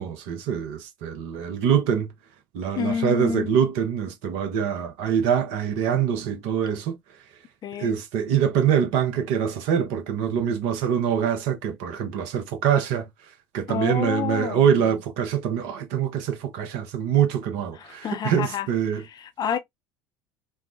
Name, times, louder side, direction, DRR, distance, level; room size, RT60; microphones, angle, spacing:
voice 1, 0.0-2.1 2.5-7.0 7.8-13.0 13.5-19.0, right 8 dB, 55° right, 0.8 m, -24 dB
voice 2, 2.8-3.5 7.6-8.0 13.7-14.6 17.7-18.7 19.1-19.6, left 8 dB, 35° left, 0.5 m, -29 dB
3.3 x 2.1 x 2.4 m
figure-of-eight pair, 65°, 12 cm